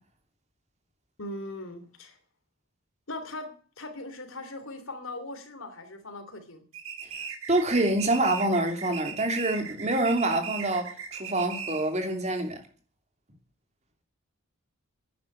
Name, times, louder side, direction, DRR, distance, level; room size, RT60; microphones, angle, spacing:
voice 1, 1.2-2.2 3.1-3.5 3.8-6.6, left 2 dB, 70° left, 3.1 m, -39 dB
sound 1, 6.7-12.0, right 7 dB, 75° right, 3.2 m, -38 dB
voice 2, 7.5-12.6, right 2 dB, 30° right, 3.1 m, -26 dB
11.0 x 10.0 x 8.6 m
head